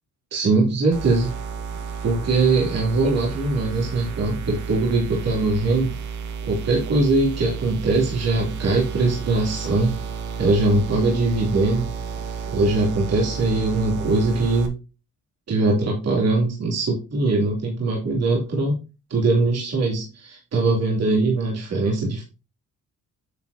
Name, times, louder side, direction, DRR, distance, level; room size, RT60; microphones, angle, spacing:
voice 1, 0.3-1.3 2.0-5.9 6.4-9.9 10.4-11.9 12.5-14.8 15.5-18.8 19.1-22.2, right 3 dB, 55° right, -2 dB, 2.8 m, -21 dB
sound 1, 0.9-14.7, right 6 dB, 75° right, 1.5 m, -32 dB
9.6 x 6.2 x 2.7 m, 0.30 s
cardioid pair, 90°, 30 cm